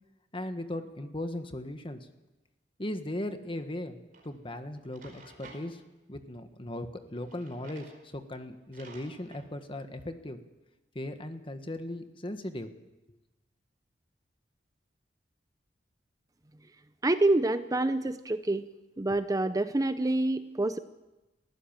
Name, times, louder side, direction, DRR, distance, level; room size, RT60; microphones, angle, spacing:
voice 1, 0.3-2.1 2.8-5.8 6.1-10.4 10.9-12.7, left 1 dB, 30° left, 8 dB, 1.5 m, -38 dB
Drawer open or close, 4.1-4.3 4.8-5.6 7.2-8.0 8.3-8.4 8.7-9.4, right 3 dB, 50° right, 5.0 m, -52 dB
voice 2, 17.0-18.7 19.0-20.8, right 2 dB, 20° right, 11 dB, 0.6 m, -27 dB
22.5 x 15.5 x 7.5 m, 1.1 s
head